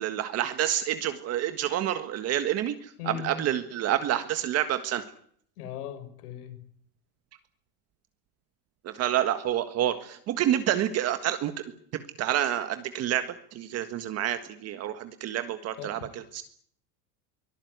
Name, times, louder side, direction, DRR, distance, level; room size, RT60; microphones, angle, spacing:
voice 1, 0.0-5.0 8.8-11.5 12.2-13.2 13.5-16.4, right 11 dB, 35° right, 10 dB, 1.6 m, -28 dB
voice 2, 3.0-3.3 5.6-6.6 15.8-15.9, left 9 dB, 85° left, 11 dB, 6.2 m, -38 dB
24.0 x 18.5 x 9.5 m, 0.63 s
supercardioid pair, 160°, 44 cm